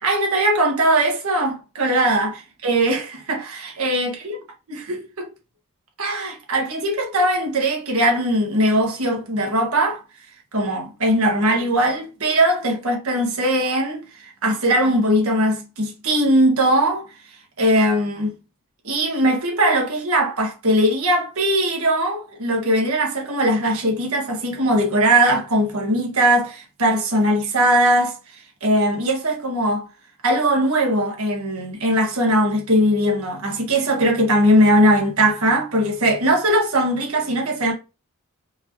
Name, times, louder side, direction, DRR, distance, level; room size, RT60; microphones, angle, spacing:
voice 1, 0.0-4.4 4.9-5.3 6.0-10.0 10.5-17.0 17.6-18.3 18.8-28.2 28.6-29.9 30.2-37.7, right 1 dB, 75° right, 1.3 m, -20 dB
4.6 x 2.6 x 3.0 m
head